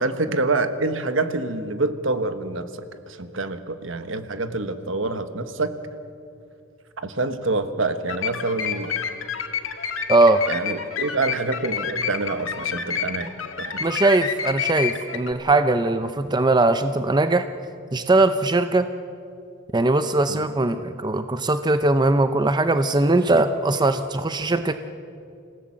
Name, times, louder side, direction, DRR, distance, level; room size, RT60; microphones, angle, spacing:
voice 1, 0.0-2.7 3.1-5.8 7.0-8.9 10.5-13.3 13.6-13.8 20.3-20.4, right 3 dB, 70° right, 9 dB, 1.4 m, -26 dB
sound 1, 8.1-15.3, left 7 dB, 75° left, 1.6 m, -29 dB
voice 2, 10.1-10.4 13.8-17.5 17.9-18.9 19.7-24.7, right 2 dB, 20° right, 9 dB, 0.6 m, -20 dB
27.0 x 17.0 x 7.6 m, 2.5 s
head